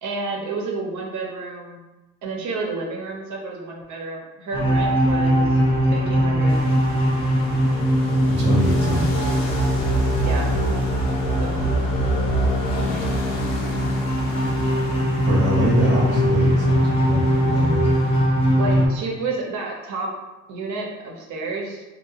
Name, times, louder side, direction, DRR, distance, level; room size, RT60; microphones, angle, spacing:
voice 1, 0.0-1.8 2.2-5.6 5.9-6.6 10.2-10.6 11.4-12.0 12.8-13.1 18.6-20.1 20.5-21.8, right 3 dB, 70° right, -1 dB, 0.7 m, -30 dB
sound 1, 4.5-18.9, equal, 20° left, 0.6 m, -20 dB
sound 2, 6.5-18.3, left 2 dB, 70° left, 0.5 m, -37 dB
voice 2, 8.3-9.1 15.2-17.9, equal, 40° right, -4 dB, 0.7 m, -23 dB
2.8 x 2.0 x 2.4 m, 1.1 s
cardioid pair, 90°, 30 cm